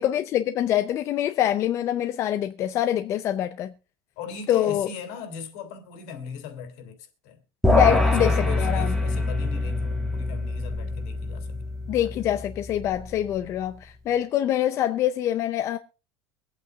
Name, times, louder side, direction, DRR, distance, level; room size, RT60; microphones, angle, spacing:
voice 1, 0.0-3.7 4.5-4.9 7.7-8.9 11.9-15.8, left 11 dB, 35° left, 0.5 m, -25 dB
voice 2, 4.2-7.4 7.9-11.6, left 7 dB, 65° left, 2.8 m, -37 dB
sound 1, 7.6-13.1, left 2 dB, 5° left, 1.5 m, -25 dB
23.5 x 8.5 x 2.4 m
cardioid pair, 165°, 9 cm